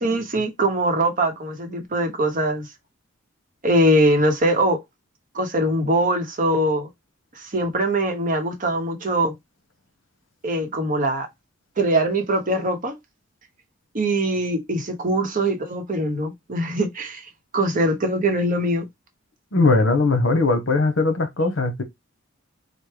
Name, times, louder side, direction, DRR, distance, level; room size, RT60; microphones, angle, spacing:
voice 1, 0.0-2.7 3.6-4.8 5.3-6.9 7.3-9.3 10.4-11.3 11.8-13.0 13.9-18.9, right 1 dB, 40° right, 0.8 m, -22 dB
voice 2, 19.5-21.8, left 3 dB, 70° left, 0.9 m, -19 dB
4.4 x 2.1 x 3.2 m
head